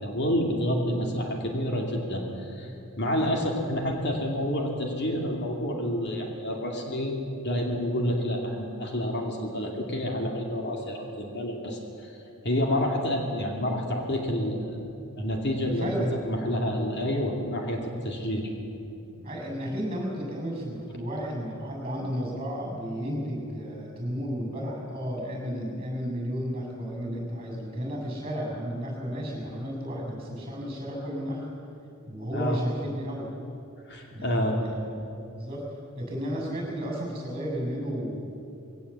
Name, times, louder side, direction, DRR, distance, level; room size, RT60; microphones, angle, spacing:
voice 1, 0.0-2.7 3.0-7.2 7.4-12.1 12.4-14.8 15.2-15.9 16.2-18.5 32.3-32.6 33.9-34.6, equal, 50° left, 1 dB, 2.6 m, -28 dB
voice 2, 15.6-16.1 19.2-31.5 32.1-33.3 34.1-34.8 35.3-35.7 35.9-38.2, equal, 25° right, 0 dB, 7.1 m, -33 dB
21.5 x 17.5 x 8.5 m, 2.8 s
head